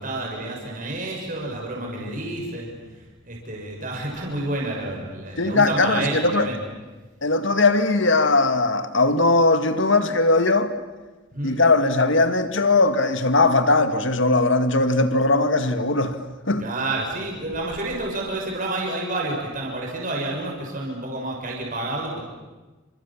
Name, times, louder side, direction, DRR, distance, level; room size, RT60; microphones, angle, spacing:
voice 1, 0.0-2.7 3.2-6.6 11.3-11.6 16.6-22.2, right 2 dB, 40° right, 6.4 m, -29 dB
voice 2, 5.4-6.5 7.2-10.7 11.4-16.2 16.5-16.6, left 2 dB, 65° left, 2.0 m, -19 dB
29.5 x 26.5 x 7.4 m
head